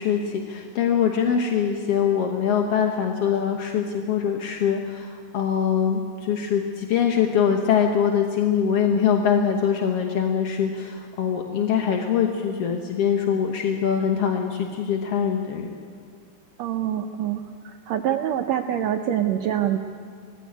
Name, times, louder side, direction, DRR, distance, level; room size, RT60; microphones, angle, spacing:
voice 1, 0.0-15.7, left 7 dB, 60° left, 3 dB, 1.7 m, -23 dB
voice 2, 16.6-19.8, right 10 dB, 80° right, 4 dB, 1.5 m, -25 dB
20.0 x 15.5 x 9.8 m, 2.2 s
omnidirectional pair, 4.0 m